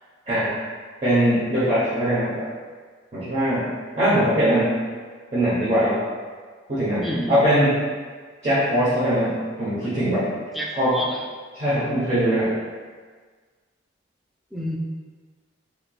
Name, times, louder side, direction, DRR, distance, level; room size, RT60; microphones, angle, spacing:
voice 1, 0.3-0.6 1.0-2.5 3.1-3.7 4.0-4.8 5.3-6.0 6.7-7.8 8.4-10.3 10.7-11.0 11.5-12.5, equal, 35° right, -13 dB, 0.9 m, -21 dB
voice 2, 7.0-7.4 10.5-11.2 14.5-14.8, equal, ahead, -2 dB, 0.3 m, -28 dB
4.4 x 2.9 x 2.3 m, 1.5 s
head